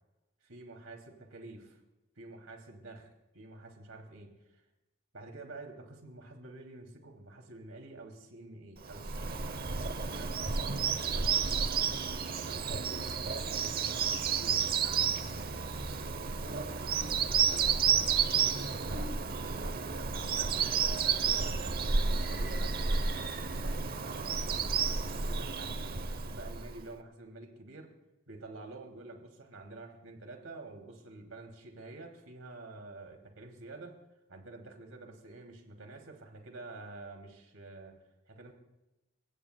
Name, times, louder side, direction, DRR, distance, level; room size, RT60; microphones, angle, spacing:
voice 1, 0.4-1.8 2.2-4.6 5.1-9.6 10.0-11.9 12.4-16.3 16.8-24.9 25.2-27.9 28.3-34.0 34.3-38.5, right 2 dB, 75° right, 3 dB, 2.8 m, -49 dB
Bird vocalization bird call bird song, 8.8-26.8, right 6 dB, 45° right, 0.8 m, -31 dB
30.0 x 16.5 x 2.3 m, 0.98 s
head